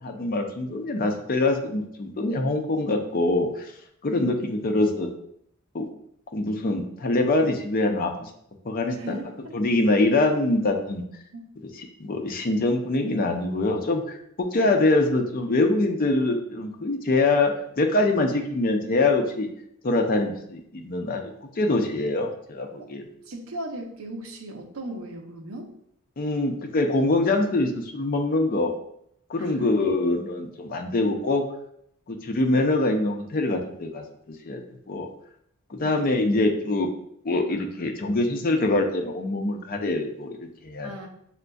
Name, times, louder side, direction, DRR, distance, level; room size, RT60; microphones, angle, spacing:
voice 1, 0.0-3.7 4.0-5.1 5.7-5.9 6.3-8.3 8.6-9.2 9.5-11.0 12.0-19.5 19.8-23.0 26.2-28.7 29.3-31.4 32.1-34.6 34.9-35.1 35.7-36.9 37.2-40.9, left 2 dB, 40° left, 4 dB, 0.5 m, -24 dB
voice 2, 4.1-4.5 8.9-9.6 11.3-11.4 23.2-25.7 29.4-29.9 35.8-36.1 40.8-41.1, right 1 dB, 75° right, 2 dB, 0.7 m, -37 dB
6.4 x 2.5 x 2.3 m, 0.72 s
head